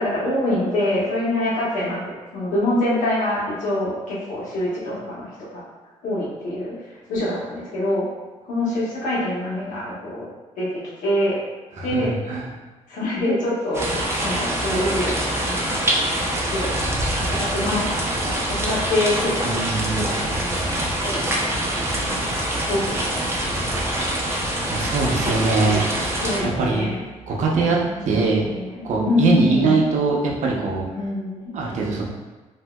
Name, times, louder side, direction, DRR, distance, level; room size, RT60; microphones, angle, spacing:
voice 1, 0.0-5.6 6.0-6.7 7.1-8.0 8.4-10.2 10.6-11.4 11.8-12.1 12.9-15.2 15.4-15.8 16.5-19.7 19.9-21.3 22.0-22.3 22.7-23.1 23.5-23.9 24.5-25.1 25.5-27.0 27.8-29.8 30.9-31.5, left 1 dB, 85° left, -7 dB, 1.1 m, -26 dB
voice 2, 11.8-12.4 19.4-20.1 24.7-25.8 26.4-26.9 27.3-27.8 28.1-28.5 28.8-30.8 31.5-32.0, right 3 dB, 70° right, -2 dB, 0.7 m, -22 dB
sound 1, 13.7-26.4, right 1 dB, 20° right, 0.6 m, -25 dB
3.5 x 2.7 x 2.2 m, 1.2 s
cardioid pair, 80°, 13 cm